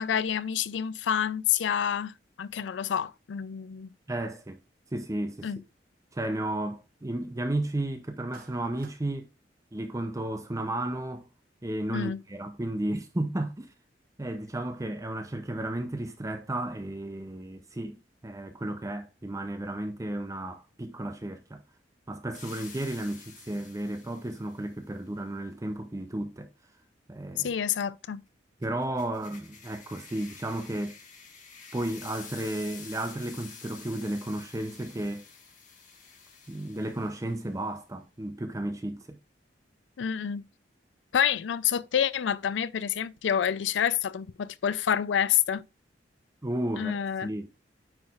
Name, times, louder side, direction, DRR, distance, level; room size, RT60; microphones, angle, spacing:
voice 1, 0.0-2.1 2.4-3.9 5.4-5.6 11.9-12.2 27.4-28.2 40.0-40.4 41.1-45.6 46.8-47.3, left 9 dB, 85° left, 0.4 m, -28 dB
voice 2, 4.1-4.6 4.9-5.5 6.1-9.3 9.7-11.3 11.6-13.7 14.2-21.6 22.1-26.5 27.1-27.5 28.6-31.0 31.7-35.2 36.5-39.2 46.4-47.5, right 1 dB, 20° right, 0.6 m, -33 dB
Clapping, 8.3-9.0, right 5 dB, 55° right, 1.0 m, -53 dB
sound 1, 22.3-24.7 28.6-37.6, left 6 dB, 45° left, 1.6 m, -49 dB
9.3 x 4.7 x 2.4 m
head